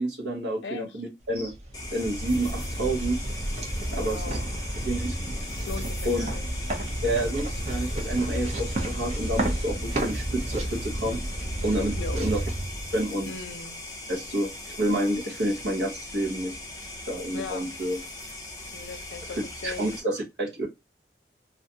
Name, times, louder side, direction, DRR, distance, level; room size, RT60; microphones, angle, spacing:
voice 1, 0.0-1.5 1.9-3.2 3.9-4.4 4.9-5.1 6.0-6.3 7.0-11.2 11.6-12.4 12.9-13.3 14.1-16.6 17.1-18.0 19.3-20.7, right 1 dB, 80° right, 0.9 m, -29 dB
voice 2, 0.6-1.0 3.9-4.5 5.6-6.5 12.0-12.2 13.3-13.8 17.3-17.7 18.7-19.9, left 4 dB, 90° left, 0.5 m, -38 dB
sound 1, 1.4-13.5, right 1 dB, 40° right, 0.5 m, -31 dB
sound 2, 1.7-20.0, left 2 dB, 20° left, 0.4 m, -40 dB
2.5 x 2.2 x 2.6 m
head